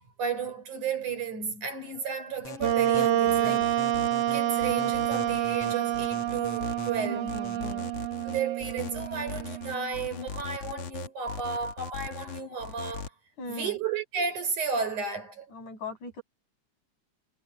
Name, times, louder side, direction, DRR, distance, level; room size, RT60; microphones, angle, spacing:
voice 1, 0.2-3.9 4.3-7.3 8.2-13.1 13.5-15.5, right 5 dB, 80° right, 6.7 m, -33 dB
sound 1, 2.4-13.1, left 6 dB, 55° left, 2.5 m, -39 dB
Wind instrument woodwind instrument, 2.6-10.0, right 12 dB, 60° right, 2.1 m, -28 dB
voice 2, 7.0-8.0 13.4-13.8 15.5-16.2, left 2 dB, 75° left, 8.3 m, -39 dB
omnidirectional pair, 3.5 m